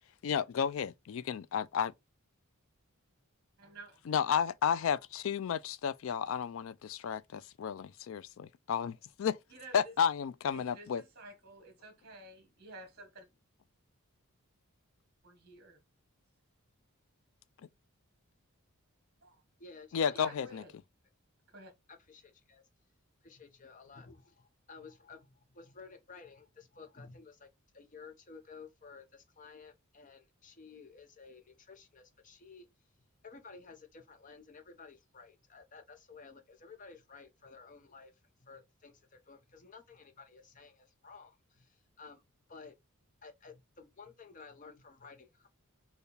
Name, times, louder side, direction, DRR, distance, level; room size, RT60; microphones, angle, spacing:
voice 1, 0.2-1.9 4.1-9.4 9.7-11.0 19.9-20.6, left 7 dB, 65° left, 0.3 m, -32 dB
voice 2, 3.6-4.0 9.5-9.9 10.5-13.3 15.2-15.8 19.2-19.3 20.1-20.7 21.5-21.7, right 2 dB, 45° right, 1.1 m, -51 dB
voice 3, 19.6-20.4 21.9-22.6 23.2-32.7 33.2-38.1 38.4-42.2 42.5-42.7 43.2-45.5, left 4 dB, 35° left, 0.7 m, -54 dB
4.5 x 2.3 x 3.2 m
head